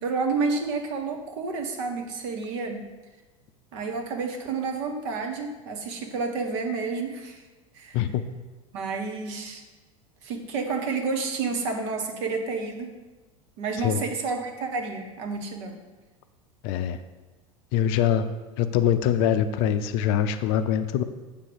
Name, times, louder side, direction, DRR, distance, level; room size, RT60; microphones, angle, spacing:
voice 1, 0.0-2.8 3.7-7.4 7.7-8.0 8.7-9.6 10.2-12.9 13.6-15.8, right 4 dB, 55° right, 4 dB, 1.1 m, -30 dB
voice 2, 16.6-17.0 17.7-18.3 18.6-21.0, left 9 dB, 50° left, 10 dB, 0.5 m, -23 dB
7.6 x 3.3 x 6.2 m, 1.2 s
figure-of-eight pair, 80°, 18 cm